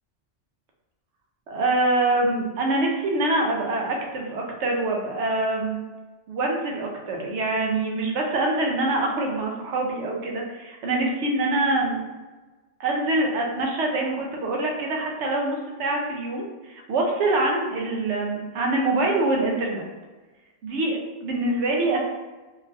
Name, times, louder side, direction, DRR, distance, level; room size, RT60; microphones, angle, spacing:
voice 1, 1.5-5.8 6.3-12.0 12.8-19.8 20.6-22.0, right 2 dB, 80° right, 0 dB, 0.9 m, -25 dB
3.2 x 2.4 x 2.5 m, 1.2 s
omnidirectional pair, 1.2 m